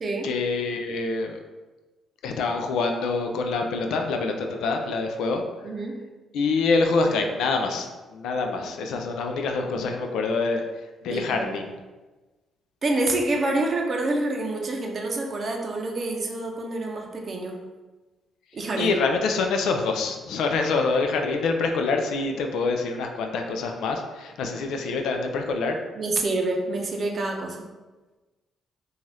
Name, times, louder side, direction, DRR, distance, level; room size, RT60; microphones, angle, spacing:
voice 1, 0.2-1.4 2.2-5.4 6.3-10.6 11.0-11.7 18.8-25.8, left 4 dB, 80° left, 4 dB, 0.3 m, -26 dB
voice 2, 5.6-6.0 11.1-11.5 12.8-17.6 18.5-18.9 25.9-27.6, right 2 dB, 45° right, 1 dB, 0.5 m, -27 dB
2.6 x 2.3 x 3.2 m, 1.2 s
cardioid pair, 90°, 0 cm